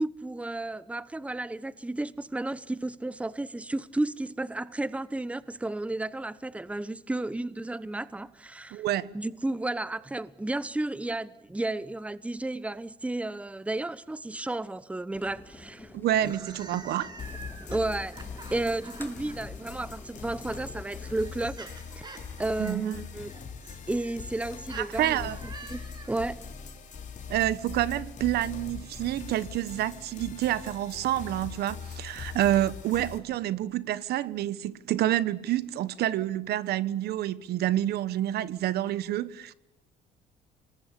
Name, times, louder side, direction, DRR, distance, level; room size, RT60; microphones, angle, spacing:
voice 1, 0.0-8.8 9.1-15.9 17.7-18.2 18.5-21.7 21.9-23.3 23.9-25.3 25.7-26.4, right 2 dB, 5° right, 1.0 m, -32 dB
voice 2, 8.7-9.1 15.9-17.1 22.6-23.0 24.7-25.4 27.3-39.5, right 13 dB, 70° right, 1.2 m, -28 dB
sound 1, 15.1-21.2, left 2 dB, 10° left, 3.6 m, -49 dB
sound 2, 16.1-19.4 20.4-26.3, right 3 dB, 25° right, 6.5 m, -46 dB
sound 3, 17.2-33.2, left 6 dB, 45° left, 4.3 m, -42 dB
27.0 x 21.0 x 8.5 m
cardioid pair, 110°, 17 cm